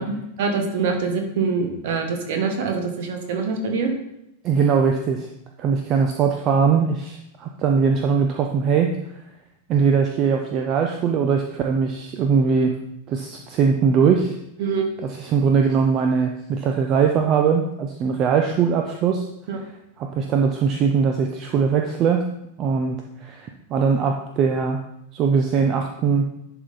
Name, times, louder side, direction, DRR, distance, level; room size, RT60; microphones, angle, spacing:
voice 1, 0.0-3.9 14.6-14.9 19.5-19.6, right 4 dB, 55° right, 4 dB, 1.3 m, -24 dB
voice 2, 4.4-5.3 5.6-8.9 9.7-12.8 13.1-14.4 15.0-19.2 20.0-22.3 22.6-24.8 25.1-26.3, right 6 dB, 35° right, 4 dB, 0.6 m, -21 dB
11.0 x 3.8 x 4.1 m, 0.83 s
figure-of-eight pair, 90°, 0 cm